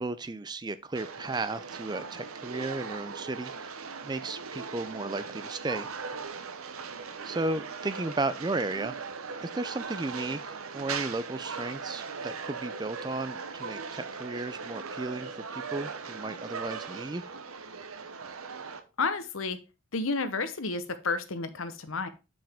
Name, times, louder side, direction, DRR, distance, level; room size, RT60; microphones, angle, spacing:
voice 1, 0.0-5.9 7.2-9.0 9.4-17.3, right 2 dB, 20° right, 14 dB, 0.4 m, -34 dB
sound 1, 0.9-18.8, right 5 dB, 90° right, 0.8 m, -39 dB
voice 2, 19.0-19.6 19.9-22.1, left 4 dB, 75° left, 10 dB, 0.9 m, -31 dB
7.2 x 6.0 x 3.5 m, 0.29 s
head